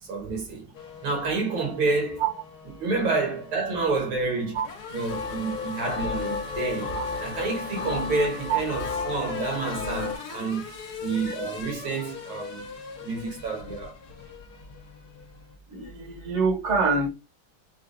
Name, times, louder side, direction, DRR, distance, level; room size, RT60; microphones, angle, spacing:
voice 1, 0.0-0.7 1.0-2.2 2.8-4.6 4.9-10.7 11.0-12.7 13.0-14.0, right 3 dB, 70° right, 1.9 m, -29 dB
Race car auto racing / Accelerating revving vroom, 0.7-15.5, left 4 dB, 60° left, 1.2 m, -41 dB
sound 1, 5.1-10.2, left 5 dB, 75° left, 1.5 m, -32 dB
voice 2, 15.7-17.1, right 5 dB, 45° right, 1.1 m, -25 dB
4.8 x 2.3 x 2.5 m
omnidirectional pair, 2.3 m